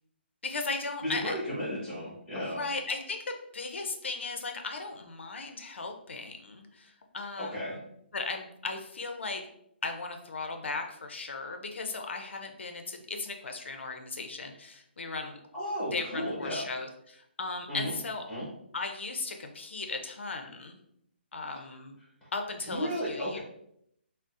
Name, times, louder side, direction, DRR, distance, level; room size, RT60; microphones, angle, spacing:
voice 1, 0.4-1.3 2.3-7.8 8.1-9.4 9.8-15.4 15.9-18.2 18.7-20.8 21.3-22.0 22.3-23.4, left 3 dB, 80° left, 4 dB, 0.5 m, -37 dB
voice 2, 1.0-2.6 7.4-7.8 15.5-16.7 17.7-17.9 18.3-18.5 22.2-22.3 22.6-23.4, equal, 5° left, -8 dB, 1.2 m, -34 dB
3.8 x 2.0 x 2.4 m, 0.75 s
hypercardioid pair, 160°, 6 cm